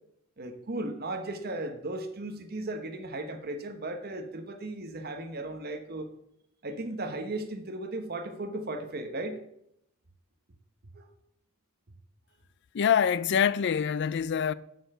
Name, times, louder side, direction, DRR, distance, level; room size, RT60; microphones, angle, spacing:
voice 1, 0.4-6.1 6.6-9.4 10.9-11.1, right 2 dB, 45° right, 1.0 m, -36 dB
voice 2, 12.7-14.5, left 8 dB, 55° left, 0.4 m, -25 dB
7.9 x 6.8 x 6.6 m
head